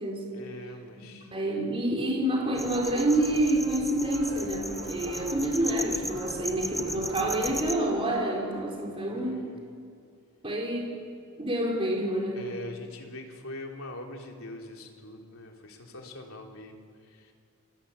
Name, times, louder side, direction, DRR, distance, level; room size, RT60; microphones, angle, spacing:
voice 1, 0.3-1.3 9.1-9.6 12.3-16.7 17.1-17.3, left 1 dB, 80° left, 1 dB, 3.6 m, -42 dB
voice 2, 1.0-9.4 10.4-11.0 11.4-12.4, right 1 dB, 25° right, -2 dB, 4.2 m, -28 dB
sound 1, 2.3-8.7, right 1 dB, 45° right, 6.8 m, -44 dB
sound 2, 2.6-7.7, equal, ahead, 1.1 m, -37 dB
29.0 x 17.5 x 8.4 m, 2.4 s
head